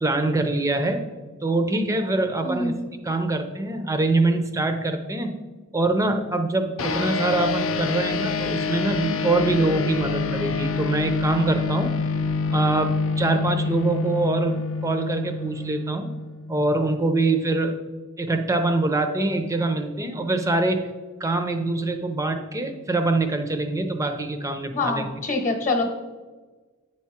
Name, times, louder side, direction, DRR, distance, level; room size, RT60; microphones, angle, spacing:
voice 1, 0.0-1.0 1.4-2.7 3.0-5.4 5.7-11.9 12.5-16.1 16.5-17.8 18.2-20.9 21.2-25.0, right 2 dB, 15° right, 7 dB, 0.5 m, -24 dB
voice 2, 2.4-2.9 24.7-25.9, left 2 dB, 35° left, 4 dB, 1.0 m, -25 dB
sound 1, 6.8-16.5, left 4 dB, 65° left, 0.5 m, -27 dB
8.8 x 4.7 x 4.3 m, 1.3 s
head